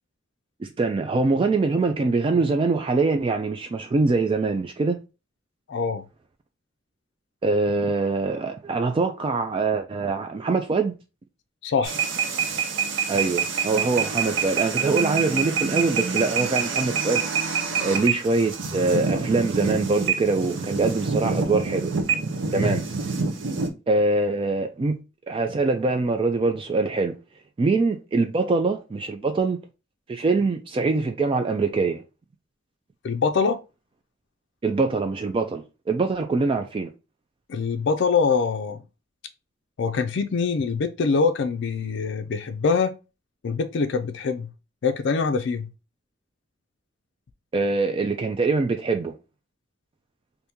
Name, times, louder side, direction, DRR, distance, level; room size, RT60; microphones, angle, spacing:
voice 1, 0.6-5.0 7.4-10.9 13.1-17.2 17.8-21.9 22.5-22.8 23.9-25.0 25.3-27.2 27.6-29.6 30.1-32.0 34.6-36.9 47.5-49.2, right 3 dB, 30° right, 0.3 m, -23 dB
voice 2, 5.7-6.0 11.6-12.0 22.5-22.8 33.0-33.6 37.5-38.8 39.8-43.0 43.4-44.5 44.8-45.7, left 5 dB, 65° left, 0.4 m, -24 dB
sound 1, 11.8-23.7, right 5 dB, 75° right, 0.7 m, -26 dB
2.8 x 2.6 x 3.5 m
head